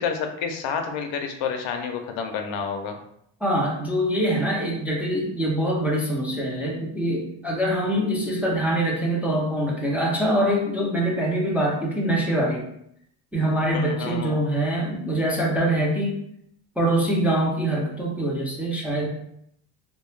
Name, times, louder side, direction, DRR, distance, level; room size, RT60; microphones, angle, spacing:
voice 1, 0.0-3.0 13.7-14.4, left 6 dB, 75° left, 5 dB, 0.6 m, -29 dB
voice 2, 3.4-12.6 13.3-16.2 16.8-19.1, right 1 dB, 5° right, -3 dB, 0.5 m, -24 dB
2.3 x 2.1 x 3.1 m, 0.72 s
cardioid pair, 100°, 47 cm